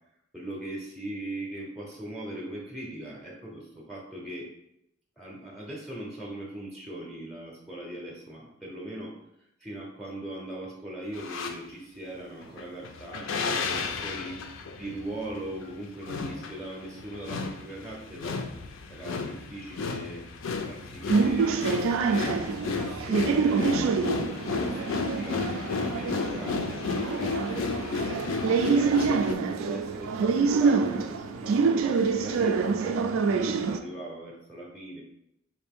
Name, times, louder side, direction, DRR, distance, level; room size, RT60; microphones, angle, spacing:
voice 1, 0.3-4.5 5.2-9.2 9.6-14.4 14.7-18.4 18.9-20.2 20.7-21.7 22.0-28.1 28.7-35.0, right 1 dB, ahead, -4 dB, 0.6 m, -40 dB
sound 1, 11.1-11.6 12.4-29.3, left 4 dB, 70° left, 0.4 m, -33 dB
sound 2, 21.1-33.8, right 5 dB, 80° right, 0.3 m, -26 dB
4.3 x 2.6 x 3.5 m, 0.80 s
head